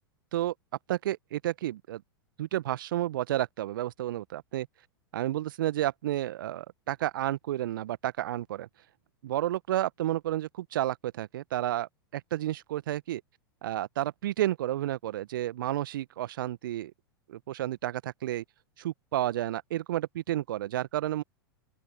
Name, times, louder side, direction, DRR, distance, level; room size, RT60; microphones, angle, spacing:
voice 1, 0.9-2.0 2.4-4.7 5.1-8.7 9.2-13.2 13.6-16.9 17.3-18.4 18.8-21.2, right 13 dB, 60° right, 1.4 m, -31 dB
open air
figure-of-eight pair, 95°, 13 cm